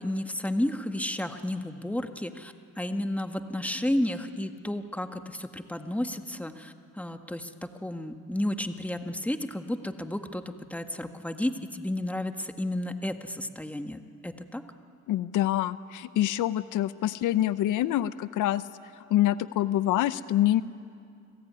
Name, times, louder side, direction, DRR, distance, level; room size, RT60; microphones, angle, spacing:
voice 1, 0.0-7.5 7.8-14.6, left 1 dB, 5° left, 6 dB, 1.7 m, -32 dB
voice 2, 15.1-18.6 19.1-20.6, left 13 dB, 85° left, 15 dB, 0.7 m, -26 dB
29.5 x 20.5 x 9.7 m, 2.4 s
cardioid pair, 90°, 30 cm